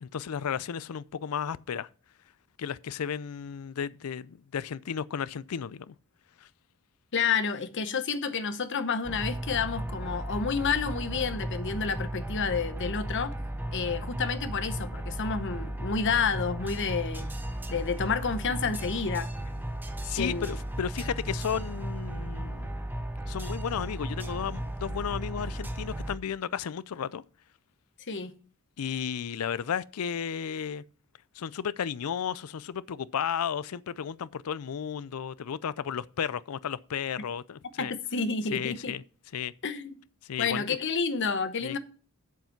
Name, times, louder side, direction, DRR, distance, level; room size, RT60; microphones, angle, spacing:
voice 1, 0.0-1.9 2.6-6.0 6.4-6.5 20.0-22.7 23.3-27.2 28.8-30.8 31.3-37.9 38.5-39.0 39.3-39.5 40.2-40.6 41.6-41.8, left 8 dB, 85° left, 0.4 m, -33 dB
voice 2, 7.1-13.3 13.7-17.3 17.7-19.3 20.1-20.6 28.1-28.3 37.8-38.9 39.6-39.9 40.4-41.8, left 5 dB, 60° left, 0.9 m, -30 dB
sound 1, 9.0-26.2, right 1 dB, 10° right, 1.0 m, -35 dB
8.0 x 7.3 x 5.7 m
head